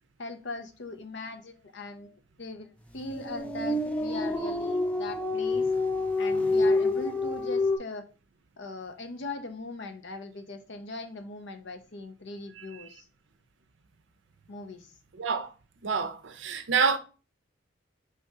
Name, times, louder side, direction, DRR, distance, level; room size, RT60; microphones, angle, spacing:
voice 1, 0.2-5.7 6.2-8.1 8.6-13.1 14.5-14.9, left 3 dB, 55° left, 0.6 m, -40 dB
sound 1, 3.0-7.8, left 2 dB, 5° left, 0.3 m, -27 dB
voice 2, 15.2-15.5 15.8-17.0, right 5 dB, 60° right, 0.5 m, -27 dB
3.4 x 2.7 x 4.6 m
head